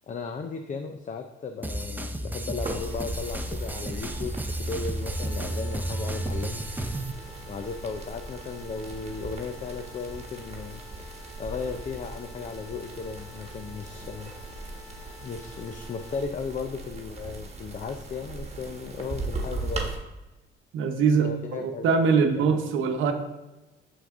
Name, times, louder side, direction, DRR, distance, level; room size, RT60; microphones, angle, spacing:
voice 1, 0.1-6.7 7.5-10.8 11.4-14.3 15.2-19.9 21.0-22.6, left 5 dB, 40° left, 6 dB, 0.5 m, -36 dB
sound 1, 1.6-7.1, right 1 dB, 10° right, 0.6 m, -32 dB
sound 2, 2.6-20.0, right 2 dB, 30° right, 1.4 m, -39 dB
sound 3, 5.1-16.2, left 2 dB, 80° left, 1.2 m, -50 dB
voice 2, 20.7-23.1, right 5 dB, 80° right, 5 dB, 0.9 m, -23 dB
6.3 x 5.8 x 3.7 m, 1.1 s
cardioid pair, 90°, 20 cm